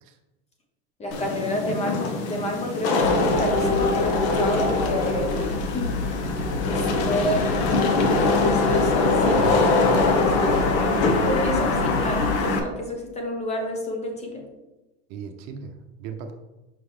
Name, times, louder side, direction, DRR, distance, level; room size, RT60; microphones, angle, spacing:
voice 1, 1.0-6.0 6.6-9.8 10.4-10.5 11.0-14.5, left 1 dB, 20° left, 1 dB, 1.1 m, -30 dB
Wind / Rain, 1.1-12.6, left 3 dB, 65° left, 1.2 m, -22 dB
sound 1, 3.0-12.4, left 2 dB, 35° left, 1.5 m, -32 dB
voice 2, 6.8-7.1 9.4-9.7 15.1-15.7 16.0-16.3, right 6 dB, 50° right, 5 dB, 0.8 m, -36 dB
5.6 x 5.4 x 3.3 m, 1.0 s
supercardioid pair, 135°, 36 cm